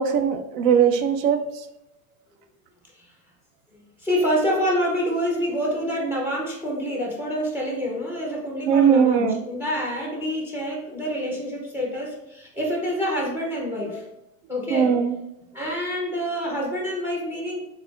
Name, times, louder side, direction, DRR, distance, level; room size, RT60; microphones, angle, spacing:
voice 1, 0.0-1.6 8.7-9.4 14.7-15.1, right 7 dB, 65° right, 8 dB, 0.6 m, -20 dB
voice 2, 4.0-14.1 14.5-15.1 15.5-17.6, equal, 5° right, -2 dB, 0.5 m, -27 dB
3.4 x 2.5 x 3.5 m, 0.85 s
supercardioid pair, 150°, 42 cm